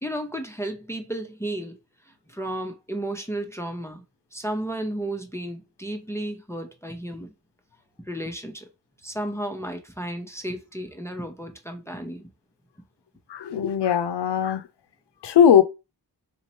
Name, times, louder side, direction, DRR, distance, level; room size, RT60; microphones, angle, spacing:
voice 1, 0.0-1.8 2.3-4.0 4.3-7.3 8.1-8.7 9.0-12.3, right 1 dB, 5° left, 0.8 m, -33 dB
voice 2, 13.3-14.6 15.2-15.6, left 8 dB, 75° left, 0.7 m, -19 dB
4.1 x 2.8 x 3.1 m
cardioid pair, 45°, 41 cm